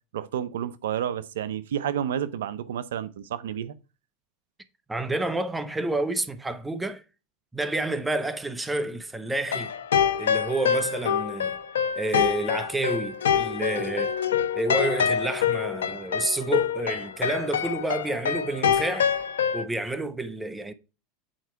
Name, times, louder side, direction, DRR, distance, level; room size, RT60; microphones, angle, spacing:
voice 1, 0.1-3.7, right 9 dB, 85° right, 0.6 m, -30 dB
voice 2, 4.9-7.0 7.5-9.7 10.2-11.6 12.0-14.2 14.5-19.1 19.5-20.7, right 2 dB, 10° right, 1.0 m, -29 dB
sound 1, 9.5-19.6, left 8 dB, 90° left, 0.7 m, -26 dB
8.9 x 4.5 x 4.6 m
hypercardioid pair, 100°, 0 cm